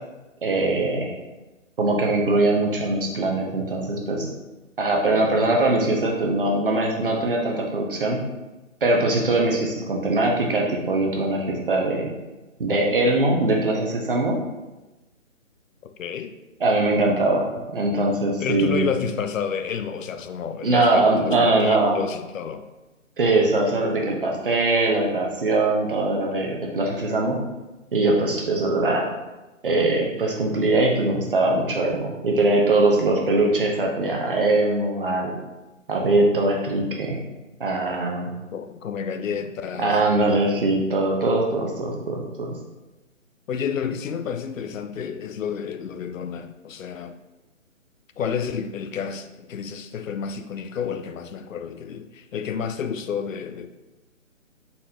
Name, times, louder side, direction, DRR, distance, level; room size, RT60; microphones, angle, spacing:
voice 1, 0.4-1.1 1.8-4.3 4.8-8.2 8.8-12.1 12.6-14.4 16.6-17.5 17.7-18.9 20.6-22.0 23.2-27.4 27.9-29.1 29.6-35.3 35.9-37.2 37.6-38.3 39.8-42.5, right 2 dB, 45° right, 0 dB, 0.8 m, -21 dB
voice 2, 16.0-16.3 18.4-22.7 38.5-40.1 43.5-47.1 48.2-53.7, left 7 dB, 75° left, 9 dB, 0.5 m, -30 dB
4.1 x 3.8 x 2.8 m, 1.1 s
hypercardioid pair, 175°, 40 cm